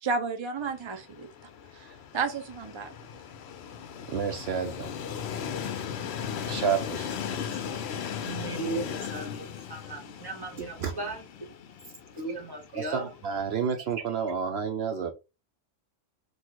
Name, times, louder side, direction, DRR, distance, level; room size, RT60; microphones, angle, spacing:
voice 1, 0.0-1.3 1.7-2.9, right 4 dB, 40° right, 0.4 m, -32 dB
Train, 0.6-13.6, left 8 dB, 65° left, 0.8 m, -38 dB
voice 2, 4.1-4.9 6.2-7.1 10.8-10.9 12.7-15.1, right 6 dB, 65° right, 0.8 m, -30 dB
voice 3, 7.3-11.3 12.1-13.1 13.8-13.9, right 3 dB, 20° right, 1.0 m, -37 dB
4.0 x 2.3 x 4.5 m
omnidirectional pair, 1.3 m